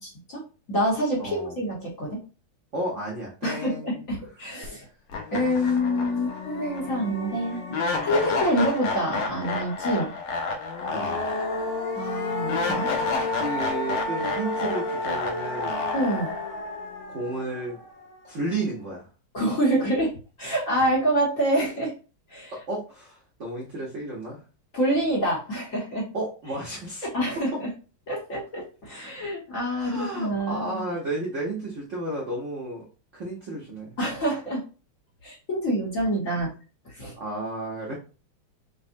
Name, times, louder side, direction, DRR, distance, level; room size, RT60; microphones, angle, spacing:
voice 1, 0.0-0.4 0.7-2.2 3.4-4.8 5.3-7.8 8.0-10.1 11.9-12.9 15.9-16.3 19.3-20.1 20.4-21.9 22.3-22.5 24.7-26.1 27.0-27.7 28.1-30.9 34.0-34.6 35.2-36.5 36.8-37.1, equal, 50° left, -4 dB, 1.1 m, -26 dB
voice 2, 1.2-1.6 2.7-4.1 5.6-5.7 10.8-11.3 12.8-13.0 13.3-15.9 17.1-17.8 18.2-19.1 22.5-24.4 26.1-27.1 29.8-32.8 33.1-34.0 37.2-38.0, right 2 dB, 70° right, -3 dB, 0.7 m, -33 dB
sound 1, 4.6-4.7 5.1-18.2, left 3 dB, 85° left, 1.6 m, -30 dB
5.2 x 2.0 x 2.5 m, 0.34 s
omnidirectional pair, 2.3 m